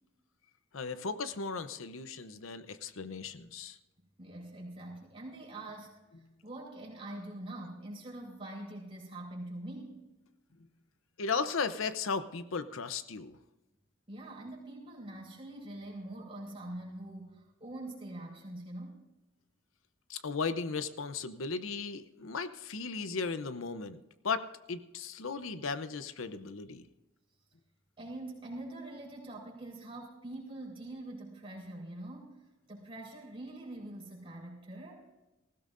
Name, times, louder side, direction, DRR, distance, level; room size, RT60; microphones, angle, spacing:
voice 1, 0.7-3.8 11.2-13.4 20.1-26.8, left 4 dB, 85° left, 12 dB, 0.7 m, -36 dB
voice 2, 4.2-6.0 6.4-10.0 14.1-19.0 28.0-35.1, right 1 dB, 25° right, -4 dB, 4.4 m, -44 dB
19.0 x 16.0 x 2.6 m, 1.0 s
head